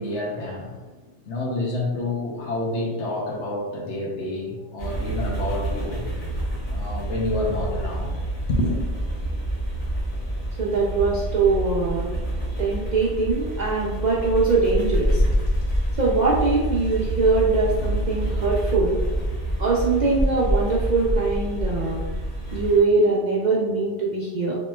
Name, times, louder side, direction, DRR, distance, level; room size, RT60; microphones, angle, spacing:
voice 1, 0.0-6.1 6.7-8.2 8.5-8.8, left 1 dB, 75° left, -1 dB, 1.0 m, -28 dB
sound 1, 4.8-22.8, right 1 dB, 20° left, 1.5 m, -28 dB
voice 2, 10.6-12.1 12.6-15.2 16.0-19.0 19.6-22.0 22.5-24.6, right 3 dB, 60° right, -5 dB, 0.4 m, -22 dB
sound 2, 14.7-15.9 16.8-18.1 18.7-19.4 20.2-21.8, equal, 45° left, 0.9 m, -25 dB
3.6 x 2.9 x 2.2 m, 1.2 s
omnidirectional pair, 1.2 m